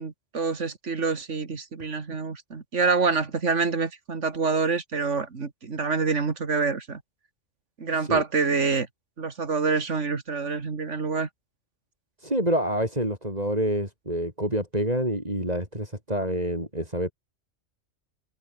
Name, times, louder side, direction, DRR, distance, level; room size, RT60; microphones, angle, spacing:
voice 1, 0.0-7.0 7.8-8.9 9.2-11.3, right 4 dB, 90° right, 2.4 m, -26 dB
voice 2, 12.2-17.1, right 1 dB, 35° right, 8.2 m, -27 dB
open air
omnidirectional pair, 1.2 m